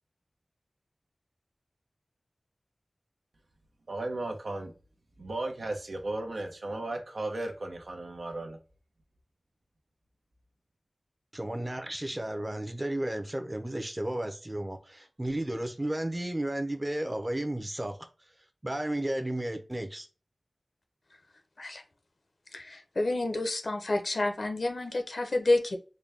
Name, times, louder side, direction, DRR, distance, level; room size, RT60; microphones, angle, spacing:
voice 1, 3.9-4.7 5.2-8.6, right 2 dB, 85° right, 0.9 m, -35 dB
voice 2, 11.3-18.1 18.6-20.1, right 1 dB, 25° right, 0.7 m, -33 dB
voice 3, 22.5-25.8, left 2 dB, 70° left, 0.7 m, -29 dB
4.0 x 2.3 x 3.3 m
wide cardioid pair, 55°, 0 cm